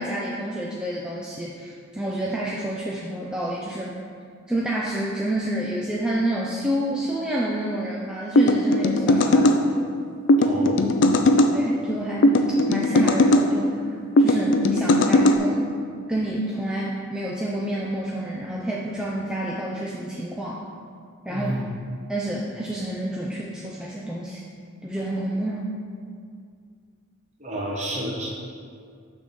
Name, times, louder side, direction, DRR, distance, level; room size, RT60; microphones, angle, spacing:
voice 1, 0.0-4.0 4.5-9.7 11.5-13.8 14.2-15.7 16.1-20.6 21.3-21.5 22.1-24.4 24.8-25.7, right 1 dB, 5° right, -5 dB, 0.4 m, -28 dB
sound 1, 8.4-9.6 10.3-11.5 12.2-13.5 14.2-15.4, left 1 dB, 60° left, 0.4 m, -18 dB
voice 2, 10.4-10.8 21.3-21.6 27.4-28.3, equal, 35° right, -4 dB, 1.3 m, -30 dB
6.4 x 3.6 x 6.2 m, 2.2 s
head